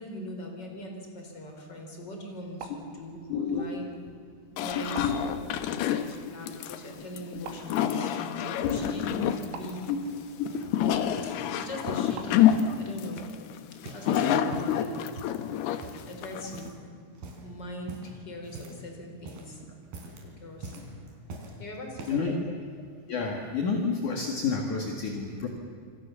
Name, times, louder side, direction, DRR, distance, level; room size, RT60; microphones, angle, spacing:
voice 1, 0.0-3.2 3.5-3.9 4.5-9.8 10.8-12.5 12.8-13.2 13.9-14.9 16.1-16.7 17.4-19.6 20.2-20.7 21.6-22.4, equal, 20° left, 2 dB, 4.2 m, -41 dB
sound 1, 2.3-12.9, right 5 dB, 85° right, 5.2 m, -50 dB
voice 2, 3.3-3.6 4.6-5.2 8.6-8.8 9.9-10.0 10.4-11.0 14.2-14.5 20.8-20.9 22.1-22.4 23.1-25.5, left 5 dB, 55° left, 3 dB, 2.4 m, -30 dB
sound 2, 4.6-16.7, left 10 dB, 70° left, 2.6 m, -28 dB
sound 3, 10.0-10.8 11.2-11.4 11.8-12.8 13.2-14.2 14.4-14.8 15.2-15.5 15.8-16.2 16.5-16.9 17.1-17.5 17.9-18.9 19.1-19.5 19.8-20.3 20.6-21.6 22.0-22.3 23.0-23.1, right 3 dB, 50° right, 5.4 m, -43 dB
27.5 x 25.0 x 7.1 m, 2.3 s
omnidirectional pair, 6.0 m